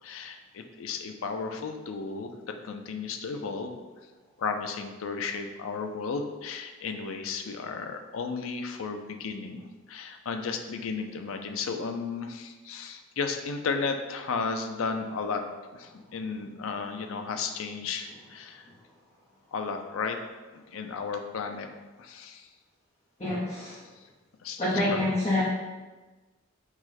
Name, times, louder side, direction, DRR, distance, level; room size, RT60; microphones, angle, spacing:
voice 1, 0.0-2.3 2.6-3.8 4.4-15.4 15.7-18.6 19.5-20.2 20.5-21.7 22.0-22.5 24.4-25.0, left 5 dB, 80° left, 6 dB, 0.4 m, -34 dB
voice 2, 23.2-23.7 24.6-25.4, left 1 dB, 30° left, -9 dB, 0.8 m, -26 dB
4.7 x 2.2 x 4.1 m, 1.2 s
head